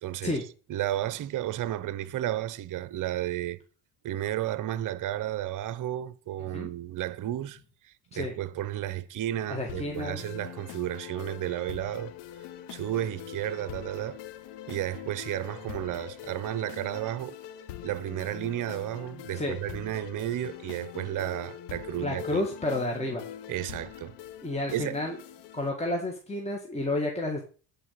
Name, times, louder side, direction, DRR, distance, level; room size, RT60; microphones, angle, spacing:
voice 1, 0.0-0.4 0.7-3.6 4.0-7.6 7.8-12.1 12.7-14.2 14.7-17.4 17.8-22.5 23.5-24.1 24.7-24.9, right 13 dB, 45° right, 0.8 m, -32 dB
voice 2, 9.5-10.2 19.3-19.6 22.0-23.2 24.4-25.2 25.5-27.4, left 2 dB, 15° left, 2.1 m, -30 dB
sound 1, 9.7-25.7, left 11 dB, 65° left, 1.2 m, -43 dB
9.9 x 4.9 x 6.6 m
hypercardioid pair, 70°, 44 cm